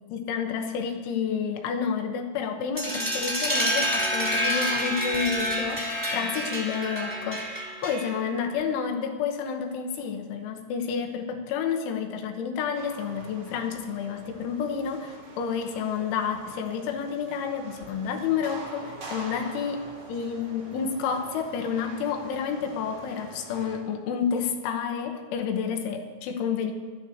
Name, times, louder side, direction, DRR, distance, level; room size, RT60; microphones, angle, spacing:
voice 1, 0.0-19.8 20.1-26.7, left 6 dB, 75° left, 4 dB, 3.2 m, -30 dB
sound 1, 2.8-8.3, equal, 5° right, 1.7 m, -28 dB
sound 2, 12.7-23.8, right 2 dB, 80° right, 1.2 m, -45 dB
20.0 x 12.5 x 2.8 m, 1.5 s
omnidirectional pair, 6.0 m